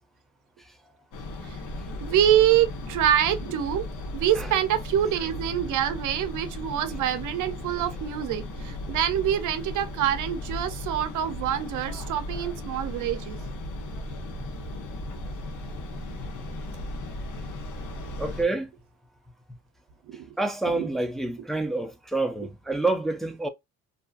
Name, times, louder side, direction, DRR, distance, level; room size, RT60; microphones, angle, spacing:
sound 1, 1.1-18.4, left 1 dB, 80° left, 0.9 m, -36 dB
voice 1, 1.9-3.8 4.1-13.4 20.1-20.3 20.7-20.9, right 10 dB, 80° right, 0.6 m, -25 dB
voice 2, 18.2-18.7 20.4-23.5, right 2 dB, ahead, 0.5 m, -28 dB
2.7 x 2.4 x 2.3 m
cardioid pair, 90°, 30 cm